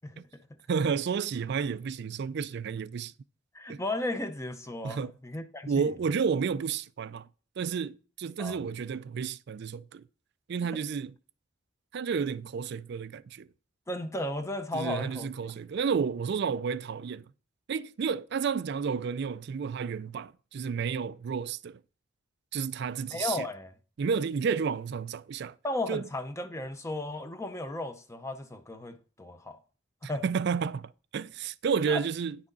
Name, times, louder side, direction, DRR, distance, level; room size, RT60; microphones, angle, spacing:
voice 1, 0.7-3.1 3.7-3.8 4.8-5.1 5.7-7.3 7.6-10.0 10.5-11.1 11.9-13.5 14.7-17.3 17.7-21.8 22.5-23.5 24.0-25.6 25.9-26.0 30.0-32.4, right 6 dB, 55° right, 0.3 m, -31 dB
voice 2, 3.5-5.9 8.4-8.6 13.9-15.3 23.1-23.7 25.6-29.6 30.0-30.2 31.9-32.0, left 2 dB, 15° left, 0.7 m, -35 dB
9.9 x 6.1 x 3.9 m
head